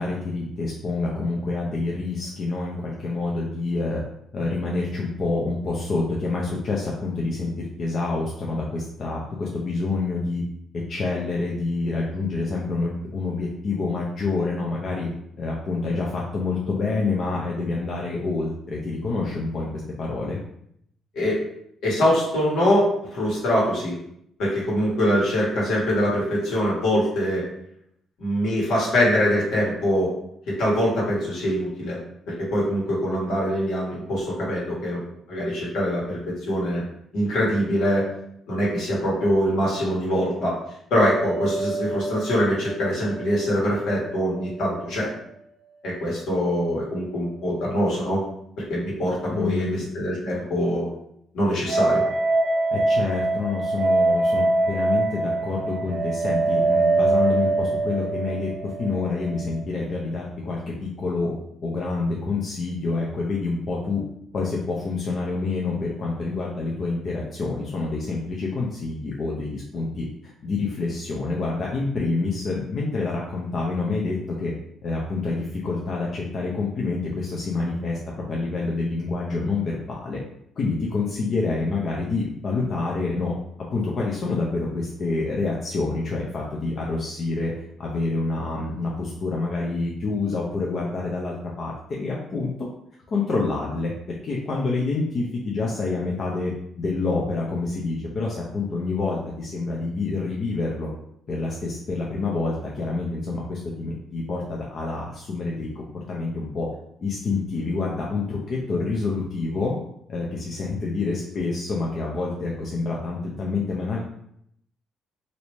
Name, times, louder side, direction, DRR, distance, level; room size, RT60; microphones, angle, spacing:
voice 1, 0.0-4.0 4.3-10.4 10.9-15.1 15.4-20.4 49.3-49.8 52.7-61.3 61.6-64.0 64.3-74.5 74.8-78.0 78.3-80.2 80.6-83.4 83.7-87.5 87.8-92.7 93.1-96.5 96.8-100.9 101.3-106.7 107.0-109.8 110.1-114.0, left 3 dB, 50° left, -3 dB, 0.6 m, -27 dB
voice 2, 21.8-23.9 24.4-27.4 28.2-30.1 30.5-32.0 32.3-35.0 35.3-36.8 37.1-38.1 38.5-40.6 40.9-45.1 45.8-48.2 48.7-50.9 51.3-52.0, equal, 80° left, -5 dB, 1.4 m, -23 dB
sound 1, 40.9-44.1 44.4-44.5 51.7-59.6, right 2 dB, 65° right, 0.5 m, -24 dB
3.1 x 2.7 x 3.1 m, 0.73 s
cardioid pair, 95°, 0 cm